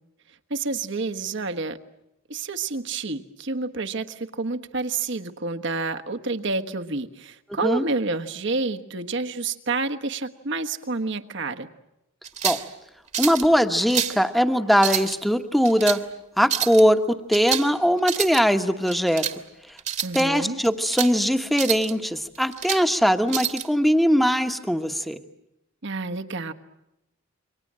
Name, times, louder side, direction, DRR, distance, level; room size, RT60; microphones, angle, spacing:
voice 1, 0.5-1.8 2.3-11.7 20.0-20.6 25.8-26.5, right 3 dB, 65° right, 7 dB, 1.4 m, -29 dB
sound 1, 12.2-12.7 13.1-13.5 13.8-14.2 14.7-15.2 15.6-16.0 16.4-16.8 17.3-17.7 18.0-18.4 18.9-19.4 19.8-20.2 20.6-21.1 21.5-21.9 22.3-22.8 23.3-23.7, right 9 dB, 35° right, 1.5 m, -28 dB
voice 2, 13.2-16.0 16.4-19.3 20.1-25.2, equal, ahead, 7 dB, 1.2 m, -21 dB
28.5 x 24.0 x 7.5 m, 0.90 s
head